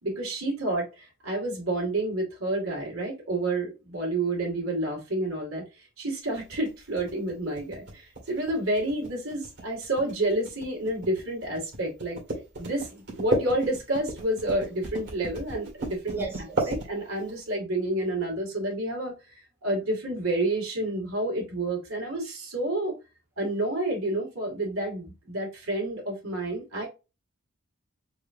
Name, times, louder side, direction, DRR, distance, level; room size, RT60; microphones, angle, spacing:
voice 1, 0.0-12.2 12.6-16.2 16.7-22.9 23.4-26.9, right 1 dB, 75° right, 2.5 m, -29 dB
sound 1, 6.4-17.4, right 2 dB, 55° right, 2.1 m, -34 dB
voice 2, 16.1-16.7, right 3 dB, 10° right, 1.0 m, -35 dB
4.7 x 3.2 x 2.7 m
head